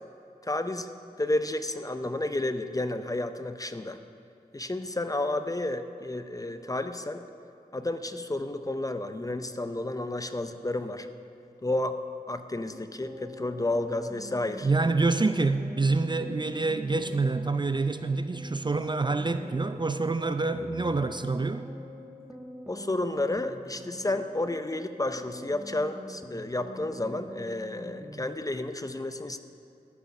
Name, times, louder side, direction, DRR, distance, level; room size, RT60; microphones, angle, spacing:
voice 1, 0.4-0.9 1.2-4.0 4.5-7.2 7.7-11.1 11.6-12.0 12.3-14.7 22.7-29.4, left 2 dB, 20° left, 10 dB, 0.6 m, -31 dB
sound 1, 12.7-28.3, equal, 10° right, 1.2 m, -45 dB
voice 2, 14.6-21.7, right 3 dB, 30° right, 10 dB, 0.4 m, -27 dB
12.5 x 5.4 x 6.0 m, 2.6 s
cardioid pair, 40°, 16 cm